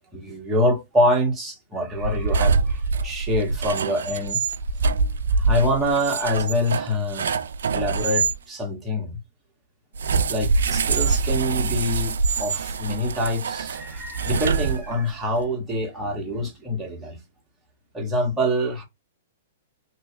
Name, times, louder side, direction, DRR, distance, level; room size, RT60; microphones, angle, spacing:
voice 1, 0.1-4.4 5.4-7.4 7.7-9.2 10.3-12.1 12.4-17.2 17.9-18.8, equal, 10° right, 1.5 m, -25 dB
sound 1, 1.9-8.4 9.9-15.2, right 4 dB, 75° right, 0.3 m, -25 dB
3.0 x 3.0 x 2.9 m
hypercardioid pair, 120°, 0 cm